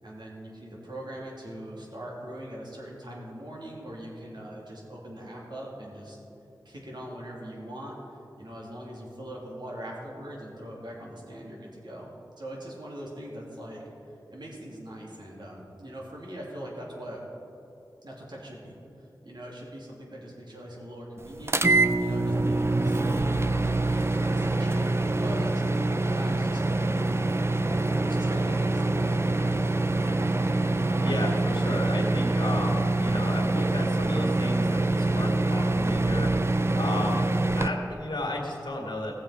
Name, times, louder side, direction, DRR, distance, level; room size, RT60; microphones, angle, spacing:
voice 1, 0.0-6.2 6.6-12.1 12.4-17.2 18.0-23.3 23.9-27.3 28.0-29.5, right 1 dB, 70° right, -4 dB, 2.8 m, -41 dB
sound 1, 21.5-37.7, right 2 dB, 35° right, 0.5 m, -25 dB
voice 2, 31.0-36.3 36.7-37.2 37.6-39.1, left 1 dB, 70° left, -1 dB, 2.0 m, -33 dB
16.5 x 7.3 x 4.9 m, 2.8 s
wide cardioid pair, 75°, 8 cm